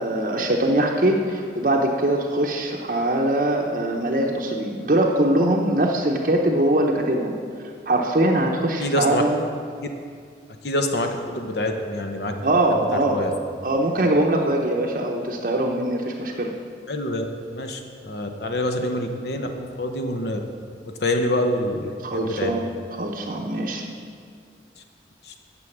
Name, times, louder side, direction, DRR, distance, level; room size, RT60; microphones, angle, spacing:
voice 1, 0.0-7.4 7.9-9.4 12.4-13.2 13.6-16.5 22.0-22.7 23.0-23.8, right 1 dB, 45° right, 0 dB, 0.7 m, -22 dB
voice 2, 8.8-9.2 10.6-11.1 11.3-12.3 12.9-13.3 16.9-17.2 17.5-20.4 21.0-22.5 25.2-25.3, left 1 dB, 65° left, 5 dB, 0.8 m, -26 dB
9.8 x 6.2 x 7.2 m, 2.2 s
head